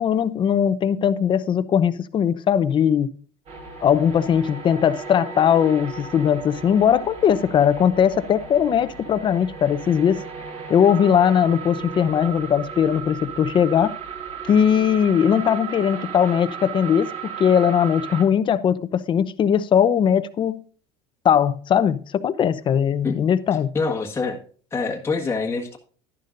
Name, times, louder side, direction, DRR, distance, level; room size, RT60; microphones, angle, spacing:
voice 1, 0.0-3.1 3.8-10.2 10.7-14.0 14.5-20.6 21.2-23.7, left 8 dB, 35° left, 0.8 m, -19 dB
sound 1, 3.5-18.2, right 6 dB, 50° right, 6.0 m, -35 dB
voice 2, 23.7-24.4 24.7-25.8, left 4 dB, 20° left, 1.5 m, -25 dB
11.0 x 10.5 x 2.6 m
supercardioid pair, 105°, 14 cm